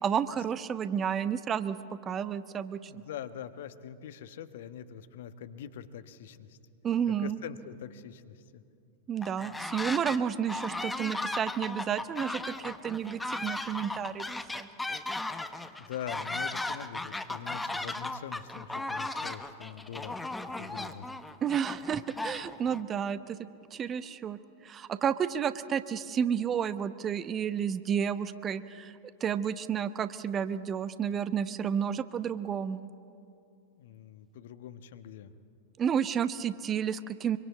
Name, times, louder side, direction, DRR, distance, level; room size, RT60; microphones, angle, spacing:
voice 1, 0.0-1.8 2.0-3.0 6.8-7.4 9.1-14.3 14.5-14.7 21.4-23.4 23.7-28.9 29.2-32.9 35.8-37.4, right 8 dB, 25° right, 14 dB, 0.9 m, -31 dB
voice 2, 2.9-6.6 7.1-8.4 15.5-20.2 20.6-21.1 33.8-35.3, left 9 dB, 55° left, 11 dB, 1.3 m, -43 dB
sound 1, 9.2-10.2 10.5-22.8, left 2 dB, 5° left, 1.2 m, -36 dB
25.5 x 24.5 x 8.4 m, 2.5 s
figure-of-eight pair, 90°, 0 cm